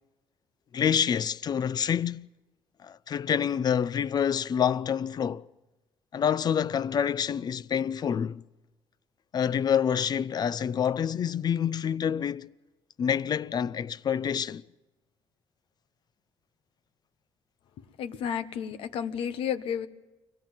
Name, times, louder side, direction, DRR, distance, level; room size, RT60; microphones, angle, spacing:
voice 1, 0.7-2.3 2.8-5.4 6.1-8.4 9.3-12.5 13.0-14.6, left 8 dB, 45° left, 0.6 m, -27 dB
voice 2, 18.0-19.9, left 8 dB, 75° left, 1.3 m, -32 dB
25.0 x 17.0 x 7.3 m
cardioid pair, 95°, 10 cm